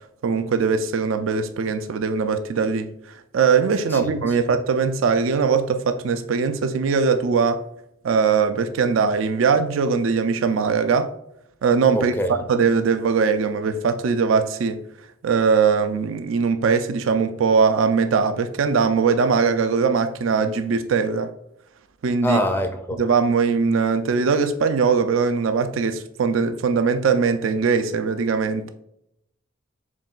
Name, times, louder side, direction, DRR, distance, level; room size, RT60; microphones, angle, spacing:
voice 1, 0.2-2.9 3.3-7.6 8.0-11.1 11.6-12.1 12.5-14.8 15.2-21.3 22.0-22.4 23.0-28.7, right 5 dB, 75° right, 0.4 m, -21 dB
voice 2, 3.9-4.4 11.9-12.3 22.2-23.1, equal, 10° left, 0.4 m, -25 dB
7.1 x 3.0 x 2.4 m
head